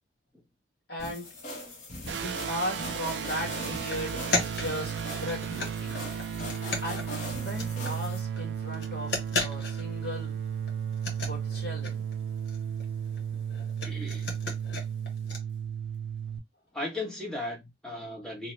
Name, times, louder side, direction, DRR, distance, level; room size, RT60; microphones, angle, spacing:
voice 1, 0.9-1.3 2.1-6.0 6.8-10.4 11.2-12.0, equal, 60° left, 1.5 m, -37 dB
sound 1, 1.0-8.2, left 1 dB, 40° left, 1.0 m, -41 dB
sound 2, 2.1-16.4, right 8 dB, 85° right, 0.4 m, -34 dB
sound 3, 3.9-8.1 8.4-8.5 8.7-10.1 10.4-10.5 10.7-15.4, left 3 dB, 80° left, 1.0 m, -35 dB
voice 2, 13.8-14.4 16.7-18.5, left 2 dB, 5° left, 0.9 m, -36 dB
2.8 x 2.1 x 3.0 m
head